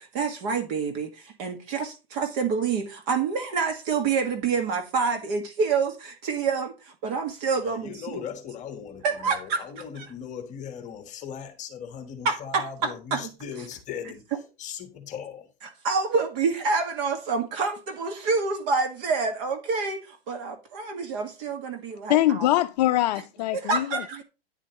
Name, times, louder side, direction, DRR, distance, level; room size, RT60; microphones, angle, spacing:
voice 1, 0.1-1.1 1.4-6.7 7.0-8.2 9.0-9.6 10.0-10.1 12.2-13.3 15.8-20.0 20.3-22.5 23.5-24.2, right 5 dB, 40° right, 1.7 m, -27 dB
voice 2, 7.6-14.2 14.6-15.5, left 8 dB, 25° left, 1.3 m, -38 dB
voice 3, 22.1-24.2, left 14 dB, 45° left, 0.6 m, -23 dB
10.0 x 9.8 x 3.0 m
hypercardioid pair, 145°, 30 cm